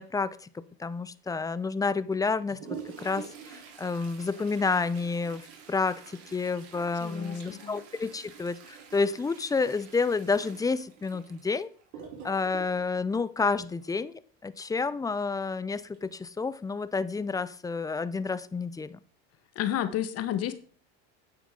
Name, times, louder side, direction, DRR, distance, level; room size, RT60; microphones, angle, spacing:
voice 1, 0.0-2.6 2.8-11.7 12.2-19.0, left 4 dB, 10° left, 16 dB, 0.5 m, -30 dB
Toilet flush, 2.1-14.1 15.9-16.0 16.4-16.5 17.3-17.4 18.0-18.3 18.7-18.8, right 7 dB, 75° right, 3.7 m, -47 dB
voice 2, 7.0-7.8 19.5-20.5, left 11 dB, 45° left, 12 dB, 1.3 m, -31 dB
9.3 x 8.1 x 3.8 m, 0.42 s
supercardioid pair, 100°, 33 cm